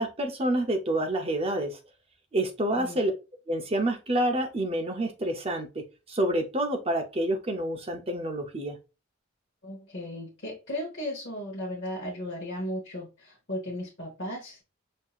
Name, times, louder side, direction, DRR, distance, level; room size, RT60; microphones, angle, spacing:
voice 1, 0.0-1.8 2.3-3.1 3.5-5.8 6.1-8.8, right 1 dB, 30° right, 0.5 m, -28 dB
voice 2, 9.6-14.6, left 1 dB, 55° left, 1.1 m, -36 dB
5.3 x 2.7 x 2.3 m
head